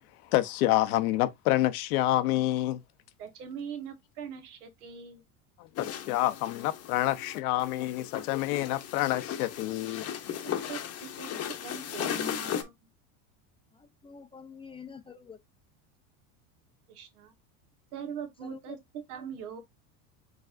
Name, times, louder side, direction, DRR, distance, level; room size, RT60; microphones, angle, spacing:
voice 1, 0.2-2.8 5.6-10.1, left 15 dB, 85° left, 0.8 m, -28 dB
voice 2, 3.2-5.2 10.4-11.3 11.6-12.7 16.9-17.3 17.9-19.6, right 7 dB, 85° right, 1.3 m, -41 dB
sound 1, 5.7-12.6, left 9 dB, 35° left, 0.8 m, -36 dB
voice 3, 13.7-15.4 18.4-18.8, left 5 dB, 15° left, 0.4 m, -47 dB
5.0 x 3.3 x 2.5 m
supercardioid pair, 120°, 43 cm